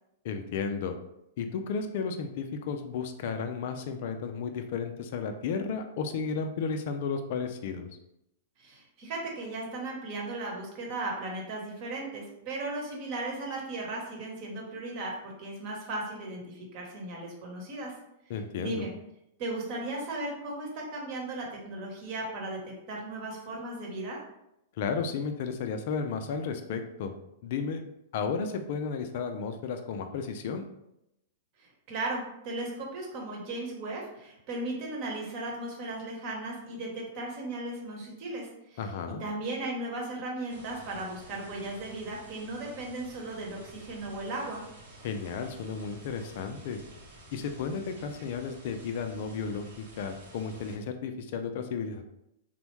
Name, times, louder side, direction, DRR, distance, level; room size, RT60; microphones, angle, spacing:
voice 1, 0.2-1.0 1.4-7.9 18.3-18.8 24.8-27.1 27.4-27.8 28.1-30.7 38.8-39.2 45.0-46.8 47.3-52.0, left 5 dB, 55° left, 6 dB, 0.4 m, -33 dB
voice 2, 8.6-17.9 18.6-18.9 19.4-22.6 22.9-24.2 31.6-38.8 39.1-44.6, right 2 dB, 45° right, -1 dB, 1.0 m, -36 dB
sound 1, 40.5-50.8, equal, 65° right, 0.8 m, -51 dB
3.3 x 2.1 x 3.1 m, 0.84 s
hypercardioid pair, 105°, 0 cm